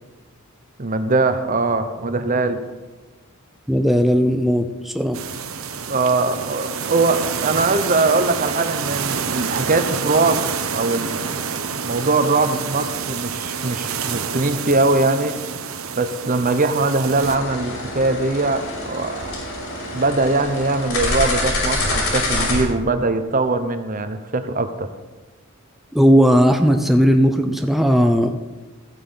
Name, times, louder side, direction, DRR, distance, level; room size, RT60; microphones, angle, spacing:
voice 1, 0.8-2.6 5.9-10.4 10.7-11.5 11.8-15.4 16.0-19.3 19.9-24.9, right 3 dB, 40° right, 9 dB, 0.9 m, -21 dB
voice 2, 3.7-5.2 25.9-28.4, equal, ahead, 5 dB, 0.7 m, -16 dB
sound 1, 5.1-17.4, right 6 dB, 85° right, 1.0 m, -28 dB
sound 2, 17.2-22.6, left 2 dB, 85° left, 5.5 m, -26 dB
14.5 x 8.8 x 5.7 m, 1.2 s
head